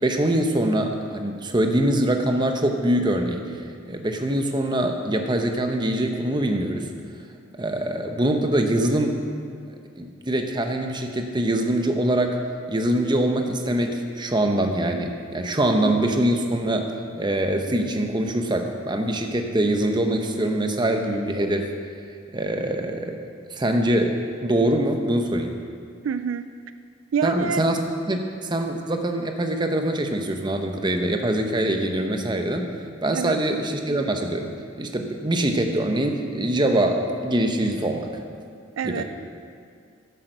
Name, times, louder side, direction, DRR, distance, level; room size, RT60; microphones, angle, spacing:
voice 1, 0.0-3.4 3.9-6.9 7.6-9.2 10.0-12.4 12.7-16.9 17.2-21.7 22.3-24.1 24.4-25.5 27.2-27.8 28.1-32.7 33.0-38.1 38.8-39.0, right 1 dB, 20° right, 4 dB, 0.9 m, -23 dB
voice 2, 26.0-26.4 27.1-27.6 33.1-33.4 38.8-39.0, right 6 dB, 70° right, 11 dB, 0.3 m, -26 dB
10.5 x 8.1 x 6.7 m, 2.2 s
head